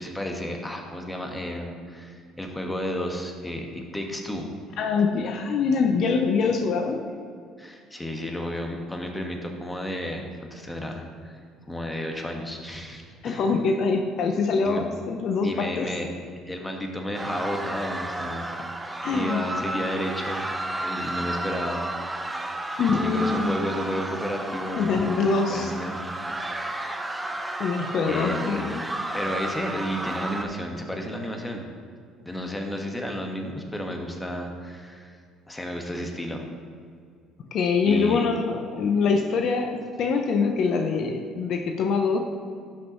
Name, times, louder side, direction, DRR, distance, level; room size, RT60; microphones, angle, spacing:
voice 1, 0.0-4.5 7.6-11.4 11.7-13.4 14.6-14.8 15.4-16.1 16.5-18.5 19.1-20.5 20.8-21.8 22.2-22.4 22.9-25.1 25.5-26.4 28.0-28.7 29.1-31.6 32.2-35.2 35.5-36.5 37.9-38.2, equal, 10° left, 2 dB, 1.4 m, -32 dB
voice 2, 4.8-7.0 13.2-15.9 19.0-19.4 22.8-23.5 24.8-25.7 27.6-28.8 37.5-42.2, left 5 dB, 60° left, 5 dB, 0.7 m, -24 dB
sound 1, 17.1-30.5, right 1 dB, 15° right, 0.8 m, -32 dB
12.0 x 6.5 x 3.1 m, 2.1 s
hypercardioid pair, 70°, 0 cm